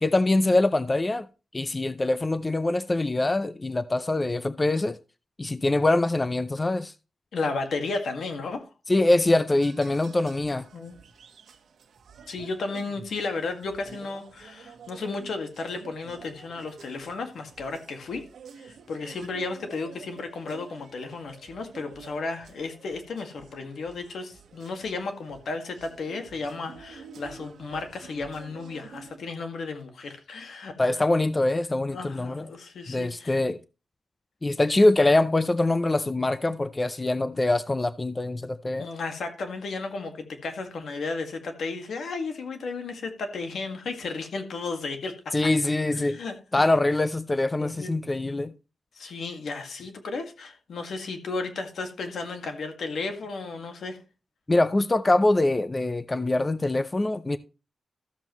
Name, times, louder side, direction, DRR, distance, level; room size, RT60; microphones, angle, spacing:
voice 1, 0.0-1.3 1.5-5.0 5.4-6.9 8.9-10.7 30.8-32.5 32.9-33.6 34.4-38.9 45.3-46.2 46.5-48.5 54.5-57.4, left 2 dB, 25° left, 0.5 m, -24 dB
voice 2, 7.3-8.7 10.7-11.0 12.3-18.2 18.6-30.9 31.9-33.4 38.8-45.1 46.0-46.6 47.6-47.9 49.0-54.0, left 3 dB, 80° left, 1.9 m, -34 dB
sound 1, 9.5-29.2, right 6 dB, 90° right, 1.1 m, -49 dB
13.5 x 7.4 x 3.0 m
wide cardioid pair, 105°, 0 cm